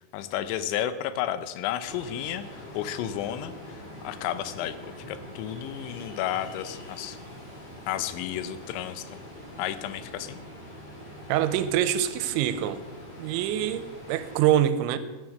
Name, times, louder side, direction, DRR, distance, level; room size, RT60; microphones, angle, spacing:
voice 1, 0.1-7.2 7.9-9.2 9.6-10.4, left 11 dB, 85° left, 12 dB, 3.1 m, -32 dB
Ocean, 1.8-14.5, left 1 dB, 35° left, 3.7 m, -44 dB
voice 2, 11.3-12.8 13.2-13.8 14.1-15.0, right 11 dB, 85° right, 12 dB, 3.0 m, -24 dB
11.5 x 10.5 x 6.5 m, 1.2 s
omnidirectional pair, 5.3 m